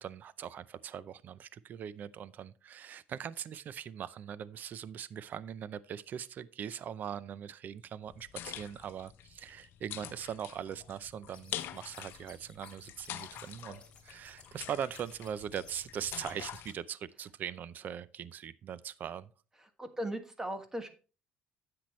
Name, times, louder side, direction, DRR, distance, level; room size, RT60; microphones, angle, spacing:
voice 1, 0.0-19.3, right 8 dB, 45° right, 0.5 m, -41 dB
sound 1, 8.1-16.7, left 12 dB, 65° left, 0.8 m, -46 dB
sound 2, 11.3-16.7, left 5 dB, 25° left, 3.1 m, -58 dB
voice 2, 19.8-20.9, right 1 dB, 15° right, 1.5 m, -37 dB
10.0 x 7.8 x 3.1 m
cardioid pair, 120°, 4 cm